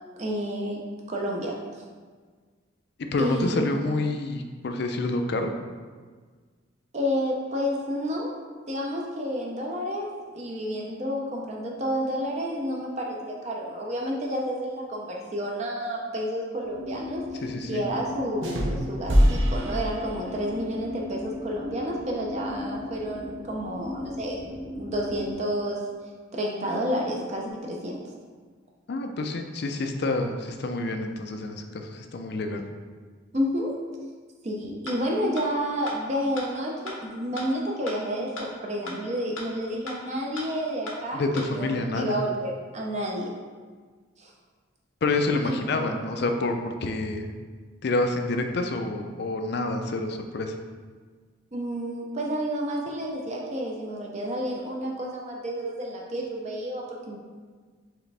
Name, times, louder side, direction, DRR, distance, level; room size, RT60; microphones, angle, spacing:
voice 1, 0.2-0.8 1.1-1.6 3.2-3.8 6.9-8.3 8.7-17.4 17.7-24.4 24.8-25.8 26.3-28.0 33.3-33.7 34.4-43.3 44.2-44.3 45.4-45.6 51.5-57.2, equal, 35° right, -2 dB, 0.5 m, -30 dB
voice 2, 3.1-5.5 17.4-17.8 28.9-32.7 41.1-42.2 45.0-47.3 47.8-50.6, left 2 dB, 55° left, 5 dB, 0.4 m, -28 dB
sound 1, 16.6-25.3, left 1 dB, 15° right, 1.0 m, -38 dB
sound 2, 18.4-20.6, equal, 70° right, 0.7 m, -24 dB
sound 3, 34.9-35.0 35.4-35.5 35.9-36.0 36.4-36.5 36.9-37.0 37.4-37.5 37.9-38.0 38.4-38.5 38.9-39.0 39.4-39.5 39.9-40.0 40.4-40.5 40.9-41.0 41.4-41.5, left 3 dB, 90° left, 0.9 m, -36 dB
4.8 x 3.3 x 3.3 m, 1.5 s
head